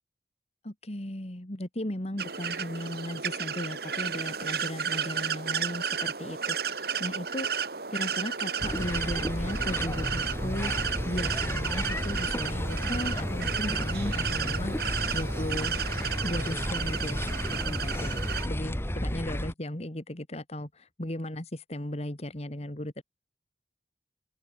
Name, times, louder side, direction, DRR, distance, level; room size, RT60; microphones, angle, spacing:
voice 1, 0.6-15.7 16.2-23.0, left 1 dB, 35° left, 2.2 m, -36 dB
sound 1, 2.2-18.5, right 7 dB, 60° right, 2.3 m, -33 dB
sound 2, 8.6-19.5, equal, 15° left, 2.5 m, -32 dB
head